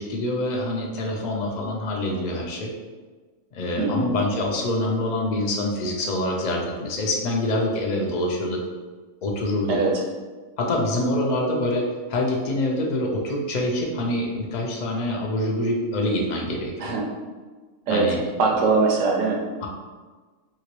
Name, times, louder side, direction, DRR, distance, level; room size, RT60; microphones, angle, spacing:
voice 1, 0.0-2.7 3.5-8.6 9.2-9.8 10.6-16.9 17.9-18.2, left 1 dB, 75° left, -1 dB, 0.4 m, -25 dB
voice 2, 3.8-4.2 9.7-10.0 16.8-17.1 17.9-19.4, right 3 dB, 75° right, 0 dB, 0.9 m, -22 dB
2.9 x 2.8 x 3.0 m, 1.4 s
omnidirectional pair, 1.4 m